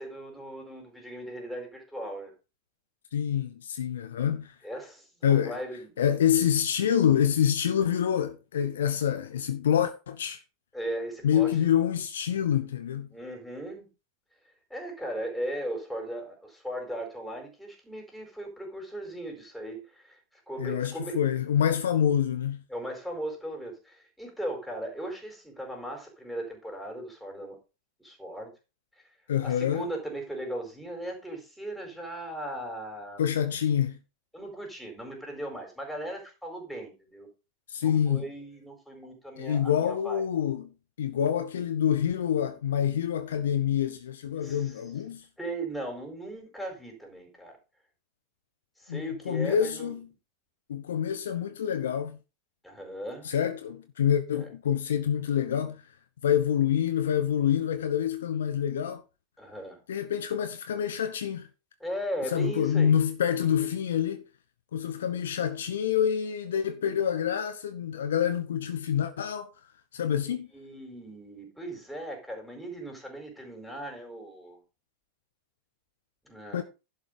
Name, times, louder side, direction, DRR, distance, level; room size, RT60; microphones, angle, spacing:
voice 1, 0.0-2.3 4.6-5.9 10.7-11.7 13.1-13.9 14.7-20.2 20.5-21.2 22.7-27.6 28.0-28.5 29.0-29.1 29.4-33.2 34.3-37.3 37.8-40.2 44.4-44.9 45.4-47.6 48.8-50.0 52.6-53.3 54.3-54.5 59.4-59.8 61.8-63.0 63.4-63.7 70.1-74.6 76.2-76.6, right 1 dB, ahead, 4.5 m, -38 dB
voice 2, 3.1-4.5 5.2-5.6 6.0-10.4 11.2-13.1 20.6-22.6 29.3-29.8 33.2-34.0 37.7-38.3 39.4-40.7 41.0-45.2 48.9-50.1 50.7-52.2 53.2-55.8 56.2-59.0 59.9-61.5 62.3-64.2 64.7-69.5 69.9-70.5 76.5-76.6, left 9 dB, 65° left, 1.1 m, -27 dB
11.5 x 5.6 x 5.2 m
figure-of-eight pair, 90°, 0 cm